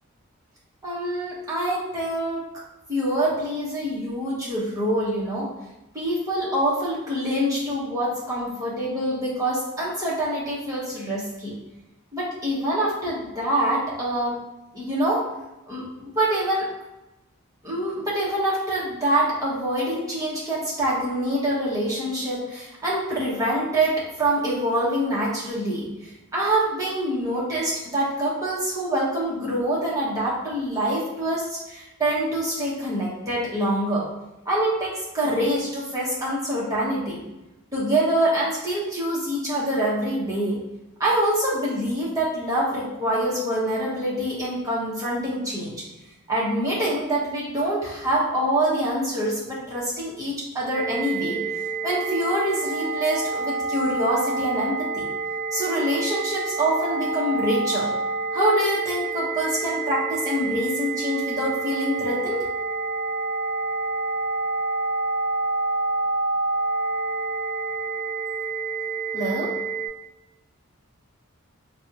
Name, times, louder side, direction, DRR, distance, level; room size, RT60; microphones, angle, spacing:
voice 1, 0.8-2.4 2.9-5.5 5.9-11.6 12.1-14.4 14.7-15.2 15.7-16.7 17.6-34.1 34.4-37.2 37.7-40.6 41.0-45.8 46.3-51.4 51.8-55.1 55.5-57.9 58.3-62.4 69.1-69.5, right 1 dB, 15° right, -7 dB, 1.0 m, -25 dB
sound 1, 50.7-69.9, right 3 dB, 45° right, 0.4 m, -28 dB
4.3 x 2.3 x 2.8 m, 0.97 s
head